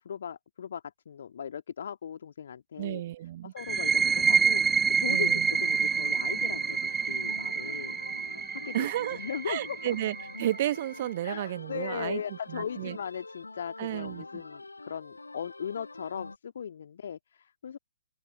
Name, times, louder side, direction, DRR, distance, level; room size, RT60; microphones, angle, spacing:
voice 1, 0.0-3.0 3.4-7.9 8.5-10.0 11.2-17.8, left 8 dB, 50° left, 2.5 m, -38 dB
voice 2, 2.8-3.9 5.1-5.5 8.7-9.2 9.5-13.0 13.8-14.4, right 13 dB, 40° right, 1.4 m, -33 dB
sound 1, 3.6-11.0, right 6 dB, 10° right, 0.5 m, -28 dB
sound 2, 5.4-16.4, left 3 dB, 75° left, 6.1 m, -46 dB
open air
figure-of-eight pair, 125°, 0 cm